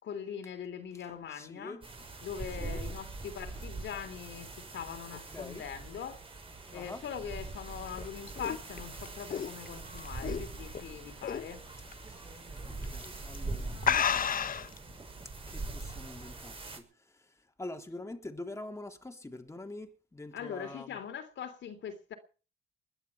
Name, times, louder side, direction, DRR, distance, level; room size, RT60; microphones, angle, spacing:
voice 1, 0.0-1.8 2.2-6.2 6.7-11.6 20.3-22.1, left 8 dB, 65° left, 3.3 m, -42 dB
voice 2, 1.1-1.9 2.5-3.0 5.1-5.7 6.7-7.0 12.0-14.3 15.5-21.0, left 2 dB, 15° left, 3.4 m, -46 dB
sound 1, 1.8-16.8, right 3 dB, 25° right, 6.4 m, -43 dB
sound 2, 7.7-10.8 11.2-11.5 11.9-12.0 12.8-13.1 13.4-13.5 13.8-14.8, left 7 dB, 45° left, 1.1 m, -31 dB
21.0 x 11.5 x 6.0 m
cardioid pair, 90°, 20 cm